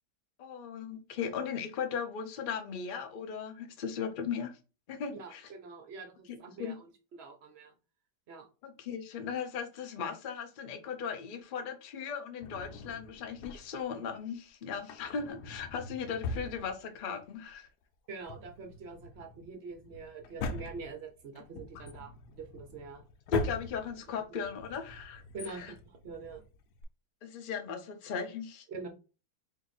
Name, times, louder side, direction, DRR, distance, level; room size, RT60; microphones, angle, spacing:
voice 1, 0.4-4.6 4.9-5.5 6.3-6.8 8.6-17.7 23.3-25.2 25.5-25.7 27.2-28.7, left 6 dB, 60° left, 0.5 m, -37 dB
voice 2, 5.1-7.7 8.3-8.5 18.1-23.0 24.1-24.2 25.3-26.4 28.7-28.9, right 4 dB, 60° right, 0.7 m, -45 dB
Drawer open or close, 12.4-13.9 14.8-17.3 17.5-17.6 18.1-26.8, left 3 dB, 80° left, 1.2 m, -41 dB
3.6 x 2.6 x 3.9 m
omnidirectional pair, 1.7 m